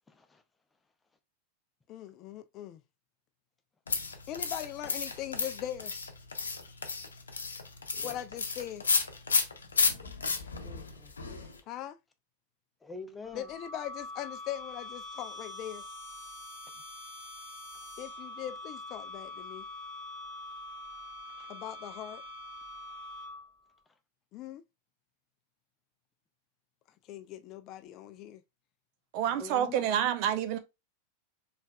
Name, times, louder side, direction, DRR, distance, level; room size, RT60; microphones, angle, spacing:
voice 1, 0.1-0.4 8.0-8.1 10.6-11.1 12.8-13.5 21.4-21.5 29.4-29.8, left 4 dB, 10° left, 0.7 m, -45 dB
voice 2, 1.9-2.8 4.3-5.9 8.0-8.8 11.7-12.0 13.3-15.8 18.0-19.7 21.5-22.2 24.3-24.6 27.1-28.4, left 12 dB, 35° left, 0.3 m, -40 dB
sound 1, 3.9-11.6, left 4 dB, 75° left, 0.7 m, -32 dB
sound 2, 13.2-23.6, left 1 dB, 20° right, 2.2 m, -44 dB
voice 3, 29.1-30.6, right 10 dB, 45° right, 0.6 m, -28 dB
4.5 x 3.3 x 2.3 m
figure-of-eight pair, 90°, 0 cm